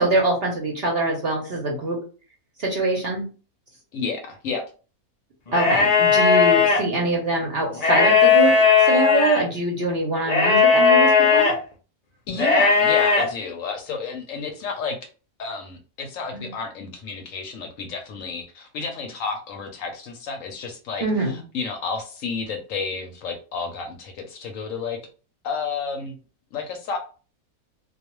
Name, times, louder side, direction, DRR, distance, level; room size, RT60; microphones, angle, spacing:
voice 1, 0.0-2.0 2.6-3.2 5.5-8.5 8.8-11.5 16.3-16.5 21.0-21.4, right 2 dB, 50° right, -1 dB, 0.8 m, -24 dB
voice 2, 3.9-4.6 12.3-15.0 15.4-25.0 25.4-26.2 26.5-27.0, left 5 dB, 70° left, 4 dB, 0.9 m, -31 dB
sound 1, 5.5-6.8 7.7-9.4 10.3-11.5 12.3-13.2, left 5 dB, 45° left, 0.5 m, -17 dB
2.3 x 2.3 x 2.9 m, 0.36 s
omnidirectional pair, 1.6 m